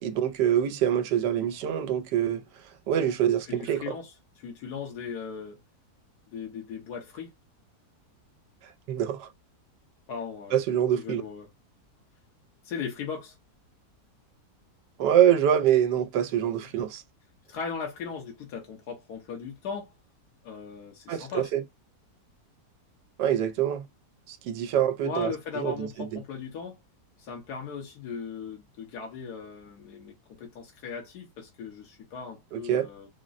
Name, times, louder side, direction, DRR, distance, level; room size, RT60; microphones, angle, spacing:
voice 1, 0.0-2.4 2.9-4.0 8.9-9.3 10.5-11.2 15.0-17.0 21.1-21.6 23.2-23.9 24.3-26.2 32.5-32.9, right 10 dB, 85° right, 1.2 m, -25 dB
voice 2, 3.5-4.1 4.4-5.6 6.3-7.3 10.1-10.6 10.9-11.5 12.6-13.4 17.5-19.9 20.4-21.5 25.0-26.8 27.2-33.1, left 6 dB, 75° left, 1.5 m, -38 dB
3.7 x 2.0 x 2.4 m
omnidirectional pair, 1.8 m